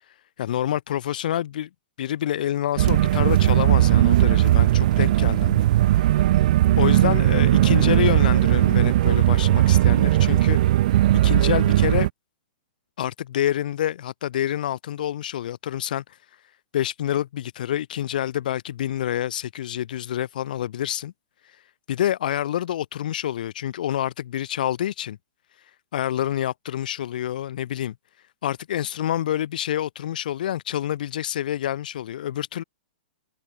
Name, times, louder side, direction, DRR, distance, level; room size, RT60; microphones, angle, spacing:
voice 1, 0.4-1.7 2.0-6.1 6.8-10.6 11.2-12.1 13.0-16.2 16.7-21.1 21.9-25.2 25.9-27.9 28.4-32.6, left 11 dB, 65° left, 7.5 m, -27 dB
sound 1, 2.8-12.1, right 14 dB, 60° right, 2.1 m, -18 dB
hypercardioid pair, 125°, 5 cm